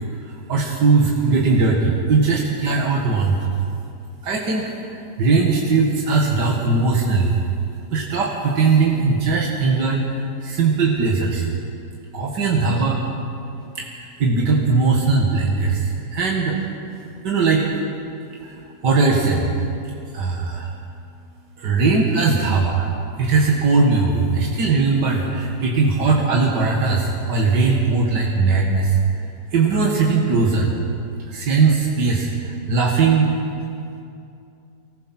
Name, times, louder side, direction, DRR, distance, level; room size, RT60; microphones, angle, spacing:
voice 1, 0.5-3.5 4.2-7.4 7.9-11.5 12.1-13.0 13.8-16.6 17.2-17.7 18.4-18.5 18.8-19.5 20.1-20.7 21.6-22.9 23.2-29.0 29.5-30.7 31.3-33.4, right 4 dB, 75° right, -2 dB, 2.4 m, -19 dB
24.0 x 19.5 x 6.0 m, 2.6 s
omnidirectional pair, 1.8 m